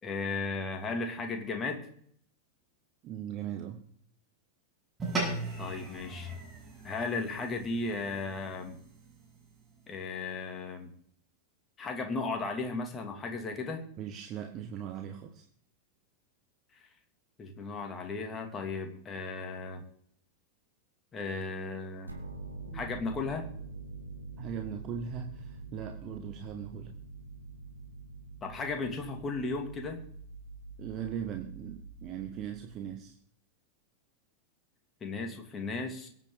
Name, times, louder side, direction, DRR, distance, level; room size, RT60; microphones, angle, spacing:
voice 1, 0.0-1.8 5.3-6.3 6.8-8.8 9.9-10.9 11.8-13.8 17.4-19.8 21.1-22.1 22.7-23.4 28.4-30.0 35.0-36.1, left 3 dB, 20° left, 4 dB, 2.8 m, -35 dB
voice 2, 3.0-3.8 14.0-15.4 22.7-22.9 24.4-26.9 30.8-33.2, right 8 dB, 35° right, 4 dB, 1.6 m, -39 dB
sound 1, 5.0-9.6, right 2 dB, 15° right, 7.5 m, -38 dB
sound 2, 22.1-33.0, right 3 dB, 80° right, 2.3 m, -45 dB
23.0 x 9.1 x 4.0 m, 0.64 s
figure-of-eight pair, 90°, 0 cm